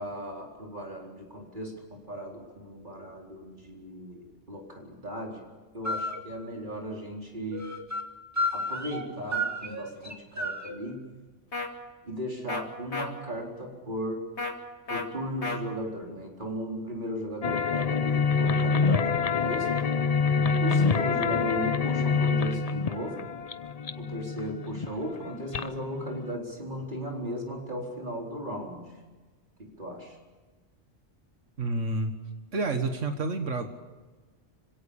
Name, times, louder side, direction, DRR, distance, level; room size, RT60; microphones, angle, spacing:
voice 1, 0.0-5.5 5.7-7.7 8.5-11.1 12.0-14.2 14.9-19.7 20.6-23.2 24.0-28.9 29.6-30.2, equal, 40° right, 0 dB, 4.5 m, -36 dB
sound 1, 5.9-6.2 7.5-8.1 8.4-9.1 9.3-10.8, equal, 15° right, 1.9 m, -31 dB
sound 2, 11.5-11.7 12.5-12.6 12.9-13.1 14.4-14.5 14.9-15.0 15.4-15.6, left 3 dB, 65° left, 2.4 m, -31 dB
sound 3, 17.4-26.3, left 5 dB, 40° left, 0.7 m, -26 dB
voice 2, 31.6-32.2 32.5-33.7, right 2 dB, 85° right, 6 dB, 1.9 m, -29 dB
26.5 x 17.0 x 7.1 m, 1.3 s
omnidirectional pair, 1.2 m